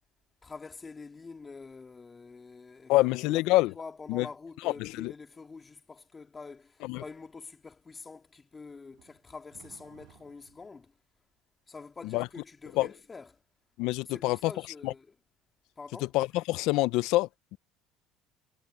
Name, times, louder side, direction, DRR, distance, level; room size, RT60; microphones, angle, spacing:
voice 1, 0.4-2.9 3.2-10.9 11.7-13.4 14.1-15.1 15.8-16.1, left 4 dB, 25° left, 2.1 m, -46 dB
voice 2, 2.9-3.7 4.1-4.3 4.6-5.1 6.8-7.0 12.1-12.3 12.7-12.9 13.8-14.5 14.8-14.9 16.1-17.6, left 19 dB, 75° left, 0.7 m, -26 dB
sound 1, 8.9-10.8, right 27 dB, 75° right, 7.1 m, -59 dB
supercardioid pair, 90°, 0 cm